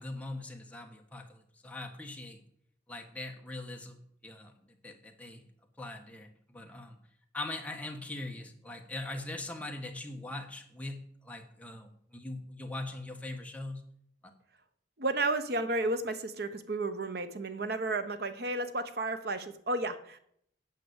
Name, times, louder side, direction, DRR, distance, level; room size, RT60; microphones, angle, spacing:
voice 1, 0.0-2.4 2.9-4.0 4.2-5.4 5.8-7.0 7.3-13.8 14.2-14.3, left 2 dB, 10° left, 3 dB, 1.2 m, -41 dB
voice 2, 15.0-20.2, right 2 dB, 60° right, 10 dB, 1.0 m, -32 dB
9.3 x 6.1 x 8.0 m, 0.69 s
head